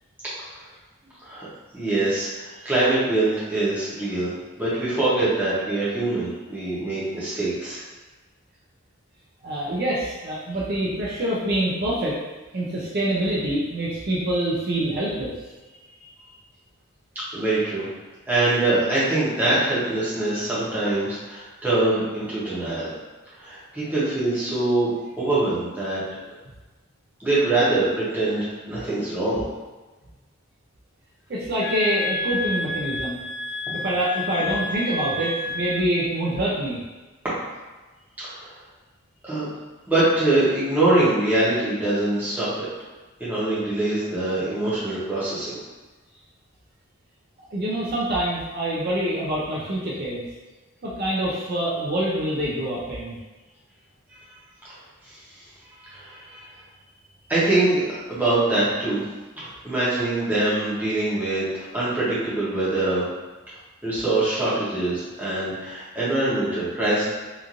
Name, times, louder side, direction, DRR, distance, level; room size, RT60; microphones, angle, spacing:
voice 1, 1.7-4.3 4.6-7.8 16.0-16.1 17.3-17.9 18.3-22.9 23.4-24.9 25.2-26.0 27.2-29.4 33.7-33.8 38.2-38.5 39.2-39.5 39.9-42.7 43.2-45.6 55.1-55.2 55.8-56.5 57.3-57.8 58.1-59.0 59.4-63.0 63.8-67.1, right 2 dB, 10° right, -10 dB, 0.8 m, -23 dB
voice 2, 9.4-12.2 12.5-15.3 31.3-33.2 33.7-36.8 47.5-50.3 50.8-53.2, right 1 dB, 45° right, -6 dB, 0.5 m, -25 dB
sound 1, 31.6-35.9, left 2 dB, 65° left, 0.4 m, -30 dB
2.9 x 2.5 x 2.5 m, 1.2 s
head